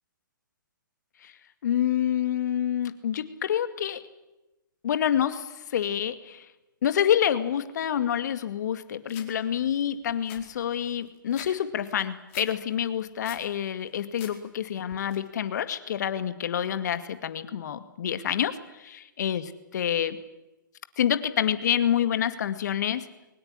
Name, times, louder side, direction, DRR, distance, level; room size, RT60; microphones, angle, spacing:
voice 1, 1.6-4.0 4.8-6.5 6.8-18.8 19.2-19.4 19.7-20.2 21.0-23.1, left 9 dB, 55° left, 11 dB, 2.2 m, -27 dB
sound 1, 9.1-9.3 9.8-9.9 10.1-11.5 11.8-12.5 12.9-13.5 13.9-14.3 14.7-15.2, left 10 dB, 40° left, 4.8 m, -45 dB
22.5 x 19.5 x 9.8 m, 0.97 s
hypercardioid pair, 130°, 11 cm